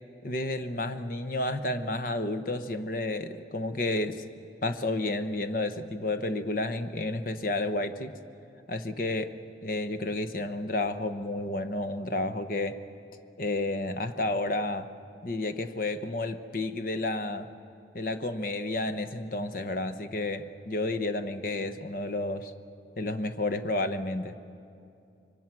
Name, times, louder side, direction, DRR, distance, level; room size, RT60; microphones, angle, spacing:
voice 1, 0.2-4.2 4.6-8.1 8.7-9.3 9.6-12.8 13.4-14.9 15.2-17.5 17.9-22.5 23.0-24.3, left 2 dB, 50° left, 9 dB, 1.0 m, -31 dB
26.5 x 23.5 x 6.1 m, 2.5 s
head